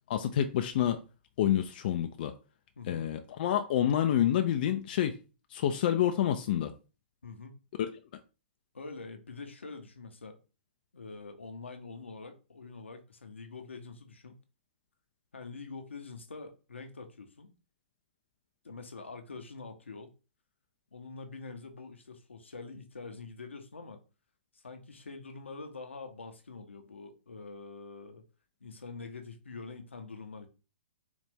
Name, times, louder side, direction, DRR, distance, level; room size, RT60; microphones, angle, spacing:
voice 1, 0.1-1.0 1.4-2.3 2.9-5.2 5.5-6.7, left 10 dB, 50° left, 0.4 m, -28 dB
voice 2, 2.8-3.1 7.2-7.6 8.7-10.4 10.9-14.4 15.3-17.5 18.6-20.1 20.9-24.0 24.5-28.3 28.6-30.5, left 4 dB, 85° left, 0.8 m, -45 dB
4.1 x 2.4 x 3.5 m
figure-of-eight pair, 120°, 6 cm